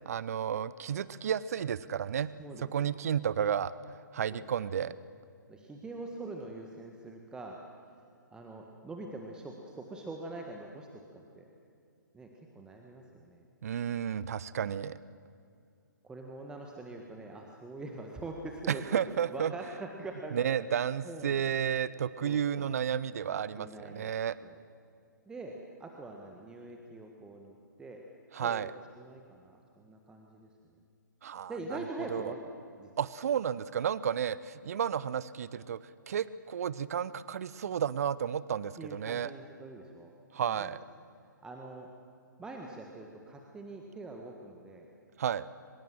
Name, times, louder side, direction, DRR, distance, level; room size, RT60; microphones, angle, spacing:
voice 1, 0.1-2.3 2.6-3.7 4.1-4.9 13.6-15.0 18.7-19.5 20.3-24.4 28.3-28.7 31.2-31.5 32.1-32.3 33.0-35.8 36.1-39.3 40.3-40.8 45.2-45.5, right 8 dB, 50° right, 18 dB, 0.7 m, -32 dB
voice 2, 2.4-2.9 4.3-4.4 5.5-7.6 8.3-11.5 12.1-13.4 16.0-18.8 19.2-21.5 22.2-22.7 23.3-24.1 24.4-24.6 25.3-25.5 25.8-28.0 28.4-28.7 29.0-30.5 31.5-32.5 32.8-32.9 38.8-40.8 41.2-41.9 42.4-44.9, right 2 dB, 5° right, 1 dB, 1.6 m, -44 dB
24.0 x 22.0 x 7.7 m, 2.4 s
figure-of-eight pair, 130°, 11 cm